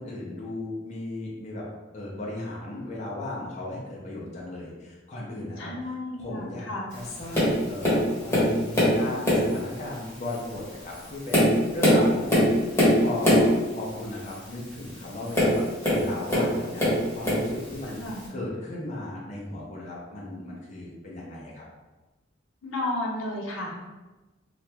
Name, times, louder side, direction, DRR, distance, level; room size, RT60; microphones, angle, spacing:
voice 1, 0.0-1.6 1.9-5.7 6.2-16.8 17.1-18.0 18.3-21.7, left 1 dB, 35° left, -4 dB, 0.6 m, -36 dB
voice 2, 5.6-6.8 18.0-18.3 22.6-23.8, left 1 dB, 85° left, -3 dB, 0.7 m, -32 dB
Tap, 7.3-7.6 7.8-9.0 9.2-9.6 10.2-10.4 11.0-13.5 15.3-16.5 16.8-17.5 18.2-18.3, equal, 10° left, 1.1 m, -21 dB
2.9 x 2.4 x 3.3 m, 1.1 s
head